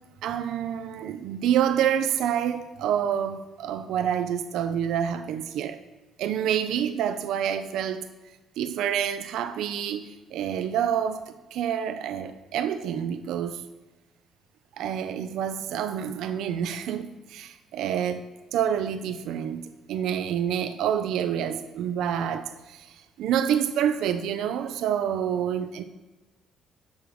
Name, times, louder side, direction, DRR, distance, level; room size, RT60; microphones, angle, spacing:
voice 1, 0.2-5.8 6.2-8.1 8.6-13.6 14.8-18.2 18.5-25.8, right 9 dB, 80° right, 0.4 m, -28 dB
7.1 x 6.2 x 4.7 m
cardioid pair, 85°, 0 cm